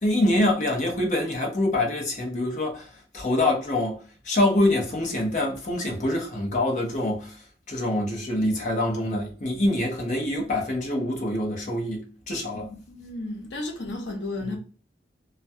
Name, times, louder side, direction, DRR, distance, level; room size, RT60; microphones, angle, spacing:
voice 1, 0.0-2.9 3.1-12.7 14.4-14.6, left 1 dB, 40° left, 0.7 m, -25 dB
voice 2, 12.5-14.6, left 2 dB, 80° left, 0.7 m, -33 dB
2.2 x 2.2 x 2.7 m
head